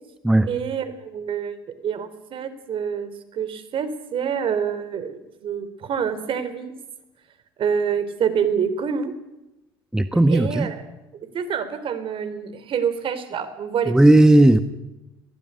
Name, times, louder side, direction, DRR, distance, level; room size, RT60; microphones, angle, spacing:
voice 1, 0.4-1.6 1.8-6.7 7.6-9.1 10.3-10.8 11.3-14.0, right 7 dB, 50° right, 12 dB, 3.7 m, -26 dB
voice 2, 9.9-10.7 13.9-14.6, right 1 dB, 5° right, 10 dB, 1.4 m, -15 dB
22.0 x 16.5 x 9.5 m, 0.97 s
hypercardioid pair, 70°, 12 cm